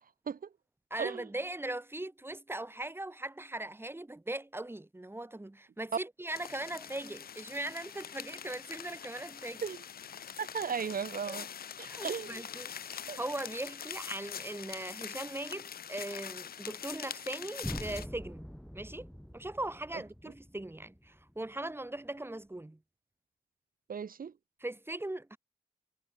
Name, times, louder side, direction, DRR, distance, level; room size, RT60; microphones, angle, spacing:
voice 1, 0.9-9.6 11.3-11.4 11.8-18.5 18.7-22.8 24.6-25.4, right 1 dB, 15° right, 3.1 m, -40 dB
sound 1, 6.3-18.1, left 8 dB, 85° left, 1.6 m, -44 dB
voice 2, 10.4-11.5 11.8-12.4 13.1-13.2 23.9-24.3, right 6 dB, 70° right, 1.9 m, -36 dB
sound 2, 17.6-21.6, equal, ahead, 2.3 m, -44 dB
cardioid pair, 70°, 15 cm